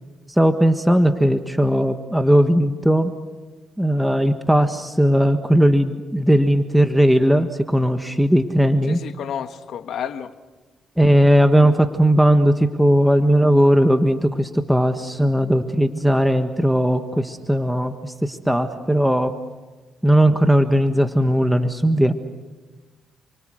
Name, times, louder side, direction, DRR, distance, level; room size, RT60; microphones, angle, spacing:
voice 1, 0.3-3.1 3.8-9.0 11.0-19.3 20.0-22.1, equal, 5° right, 7 dB, 1.5 m, -17 dB
voice 2, 8.9-10.3, left 8 dB, 70° left, 9 dB, 1.6 m, -30 dB
30.0 x 24.0 x 6.5 m, 1.3 s
cardioid pair, 80°, 0 cm